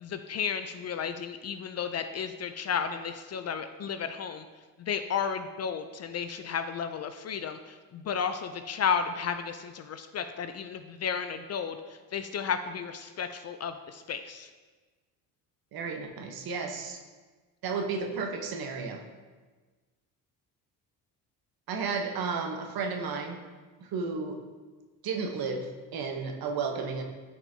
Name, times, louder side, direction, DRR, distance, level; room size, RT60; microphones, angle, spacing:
voice 1, 0.0-4.4 4.8-7.6 7.9-11.8 12.1-14.5, left 7 dB, 40° left, 9 dB, 0.5 m, -33 dB
voice 2, 15.7-17.0 17.6-19.0 21.7-23.4 23.8-24.4 25.0-27.0, right 4 dB, 55° right, 4 dB, 1.1 m, -33 dB
8.7 x 4.7 x 2.7 m, 1.3 s
hypercardioid pair, 65°, 43 cm